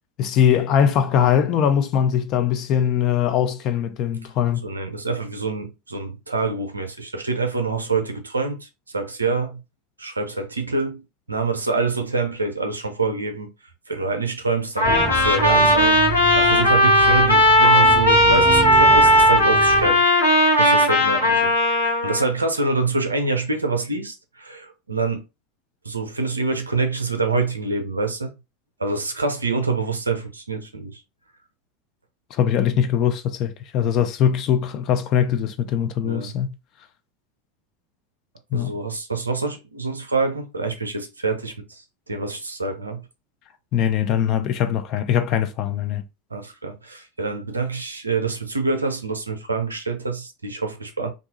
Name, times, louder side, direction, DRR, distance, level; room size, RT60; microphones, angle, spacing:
voice 1, 0.2-4.6 32.3-36.5 38.5-38.7 43.7-46.0, left 9 dB, 45° left, 0.5 m, -21 dB
voice 2, 4.6-9.6 10.0-13.5 13.9-20.1 20.5-25.2 25.8-28.3 28.8-31.0 36.0-36.3 38.5-43.0 46.3-51.1, right 3 dB, 80° right, 0.5 m, -26 dB
Trumpet, 14.8-22.2, left 1 dB, 85° left, 0.7 m, -16 dB
sound 1, 14.8-19.9, right 5 dB, 30° right, 0.4 m, -28 dB
2.6 x 2.3 x 3.0 m
figure-of-eight pair, 80°, 0 cm